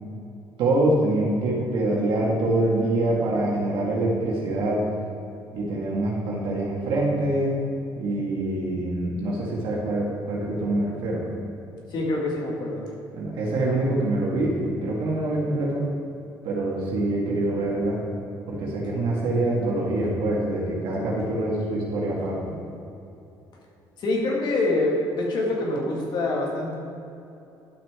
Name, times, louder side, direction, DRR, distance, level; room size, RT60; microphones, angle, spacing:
voice 1, 0.6-4.9 5.5-7.6 7.9-11.2 13.1-14.6 14.8-15.8 16.4-18.0 18.5-22.4, right 2 dB, 75° right, -4 dB, 1.8 m, -25 dB
voice 2, 11.9-12.9 24.0-26.8, left 2 dB, 60° left, -1 dB, 2.0 m, -25 dB
11.5 x 6.0 x 3.7 m, 2.7 s
cardioid pair, 115°, 9 cm